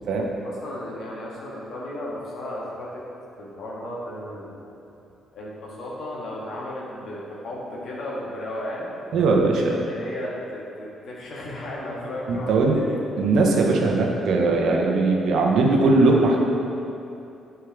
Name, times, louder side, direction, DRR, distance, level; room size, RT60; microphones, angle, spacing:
voice 1, 0.4-3.0 3.4-4.6 5.3-9.0 9.3-13.0, left 1 dB, 65° left, -4 dB, 1.7 m, -34 dB
voice 2, 9.1-9.7 12.3-12.8 13.2-16.4, right 3 dB, 70° right, 0 dB, 1.0 m, -19 dB
9.6 x 4.6 x 3.6 m, 2.8 s
hypercardioid pair, 50°, 0 cm